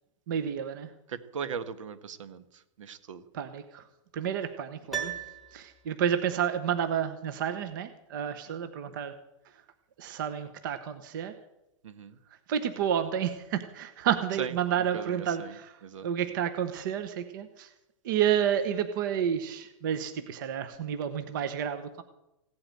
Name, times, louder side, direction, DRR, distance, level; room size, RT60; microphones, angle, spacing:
voice 1, 0.3-0.9 3.3-3.9 4.1-5.1 5.5-9.1 9.4-9.6 10.0-11.3 12.3-17.7 18.0-22.0, right 9 dB, 40° right, 9 dB, 1.0 m, -30 dB
voice 2, 1.1-3.2 11.8-12.2 14.4-14.5 14.9-15.5 15.8-16.1, right 7 dB, 65° right, 12 dB, 1.5 m, -38 dB
Piano, 4.9-6.2 6.4-6.5, right 8 dB, ahead, 1.4 m, -37 dB
16.5 x 8.7 x 9.2 m, 0.88 s
hypercardioid pair, 175°, 17 cm